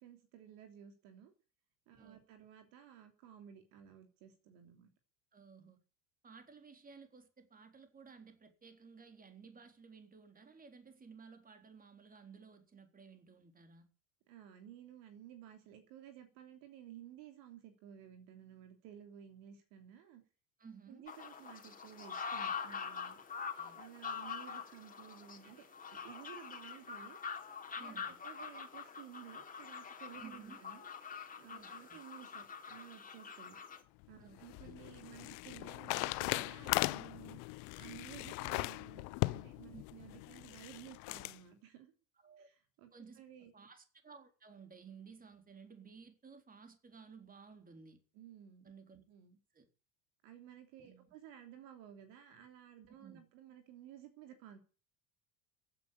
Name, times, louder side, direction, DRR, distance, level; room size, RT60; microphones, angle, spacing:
voice 1, 0.0-1.3 1.9-4.9 14.3-20.2 20.9-23.2 23.7-25.6 25.9-27.2 27.8-30.9 31.4-33.6 34.1-37.4 37.8-41.9 42.4-43.5 48.1-48.7 49.1-49.4 50.2-54.6, right 10 dB, 55° right, 3.2 m, -55 dB
voice 2, 5.3-5.8 6.2-13.9 20.6-21.1 23.5-23.8 27.8-28.2 30.2-30.6 31.4-32.0 34.2-34.8 39.7-39.8 42.2-42.5 42.9-43.2 43.5-48.0 48.6-49.0 49.5-49.7 50.8-51.1 53.0-53.2, right 5 dB, 20° right, 3.8 m, -56 dB
sound 1, 21.1-33.8, left 6 dB, 20° left, 3.5 m, -45 dB
sound 2, 34.0-41.4, left 25 dB, 50° left, 0.8 m, -39 dB
15.5 x 9.6 x 8.7 m
figure-of-eight pair, 70°, 40 cm